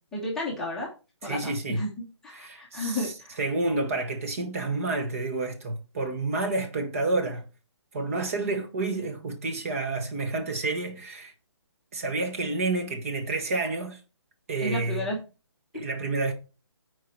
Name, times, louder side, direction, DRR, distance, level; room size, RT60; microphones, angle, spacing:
voice 1, 0.1-0.9 1.2-3.4 14.6-15.2, left 1 dB, 5° left, 1.0 m, -32 dB
voice 2, 1.2-1.8 2.3-3.1 3.4-7.4 7.9-11.3 11.9-14.0 14.5-15.1 15.7-16.3, right 3 dB, 30° right, 1.2 m, -29 dB
9.1 x 4.7 x 4.5 m
hypercardioid pair, 170°, 15 cm